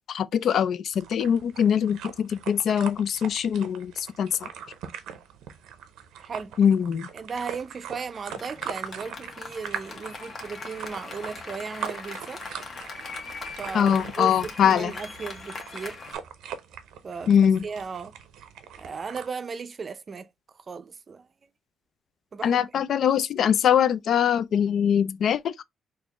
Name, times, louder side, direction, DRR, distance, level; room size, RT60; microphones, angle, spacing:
voice 1, 0.1-4.5 6.6-7.1 13.7-14.9 17.3-17.7 22.4-25.6, left 8 dB, 65° left, 0.3 m, -22 dB
sound 1, 0.9-19.3, right 8 dB, 85° right, 0.6 m, -41 dB
voice 2, 6.2-6.5 7.1-12.4 13.6-16.0 17.0-18.1 18.8-20.3 20.7-21.3 22.3-22.7, right 5 dB, 40° right, 0.4 m, -36 dB
Applause, 8.3-16.1, left 4 dB, 50° left, 1.2 m, -40 dB
4.2 x 2.5 x 2.9 m
cardioid pair, 90°, 0 cm